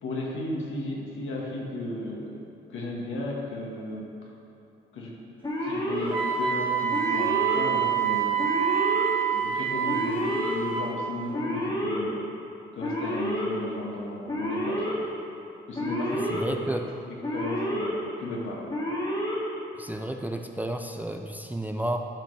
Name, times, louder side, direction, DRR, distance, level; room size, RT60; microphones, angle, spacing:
voice 1, 0.0-4.0 4.9-5.1 5.6-8.5 9.2-12.2 12.8-15.0 15.7-16.4 16.8-18.6, left 1 dB, 75° left, -3 dB, 1.8 m, -34 dB
Alarm, 5.4-6.1 6.9-7.6 8.4-9.0 9.9-10.5 11.3-12.0 12.8-13.5 14.3-14.9 15.7-16.4 17.2-17.9 18.7-19.4, equal, 20° left, 1.9 m, -29 dB
Wind instrument woodwind instrument, 6.1-10.9, right 8 dB, 25° right, 1.5 m, -26 dB
voice 2, 16.3-16.9 19.8-22.1, right 1 dB, 10° right, 4 dB, 0.5 m, -31 dB
11.5 x 6.1 x 3.4 m, 2.9 s
cardioid pair, 90°, 20 cm